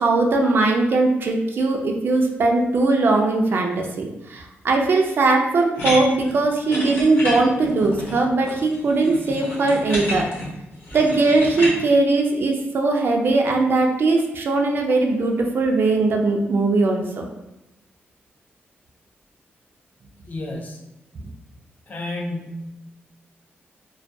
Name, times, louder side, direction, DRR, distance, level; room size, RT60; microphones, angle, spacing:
voice 1, 0.0-10.3 10.9-17.3, right 3 dB, 55° right, 2 dB, 0.3 m, -20 dB
sound 1, 5.7-11.7, left 1 dB, 65° left, 0.8 m, -30 dB
voice 2, 20.2-20.8 21.9-22.8, left 1 dB, 35° left, 0 dB, 0.4 m, -31 dB
2.2 x 2.1 x 2.6 m, 0.93 s
wide cardioid pair, 125°, 4 cm